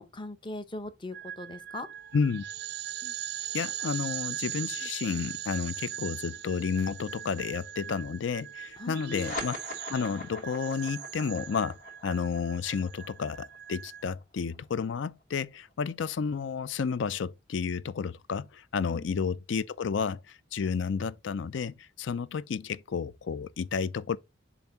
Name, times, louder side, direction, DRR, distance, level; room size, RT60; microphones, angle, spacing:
voice 1, 0.0-1.9 3.0-3.1 8.8-9.4 18.9-19.1, left 2 dB, 25° left, 0.7 m, -40 dB
sound 1, 1.1-14.1, right 12 dB, 60° right, 0.4 m, -40 dB
voice 2, 2.1-2.4 3.5-9.6 9.9-24.2, left 6 dB, 70° left, 0.4 m, -31 dB
sound 2, 9.0-15.9, left 2 dB, 45° left, 2.7 m, -43 dB
7.1 x 2.6 x 5.5 m
head